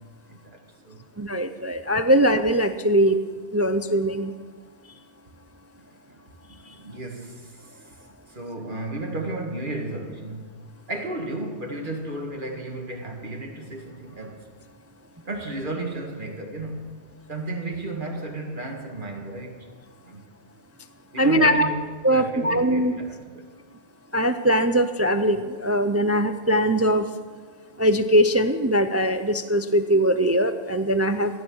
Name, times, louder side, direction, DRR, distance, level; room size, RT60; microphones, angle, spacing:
voice 1, 0.3-1.0 6.5-8.0 8.3-14.4 15.3-19.7 20.1-20.2 21.1-23.5, right 2 dB, 45° right, 2.1 m, -34 dB
voice 2, 1.2-3.2 3.5-4.3 21.2-21.7 22.0-22.9 24.1-27.1 27.8-31.4, equal, 25° right, 0.3 m, -21 dB
16.5 x 10.5 x 6.3 m
omnidirectional pair, 1.2 m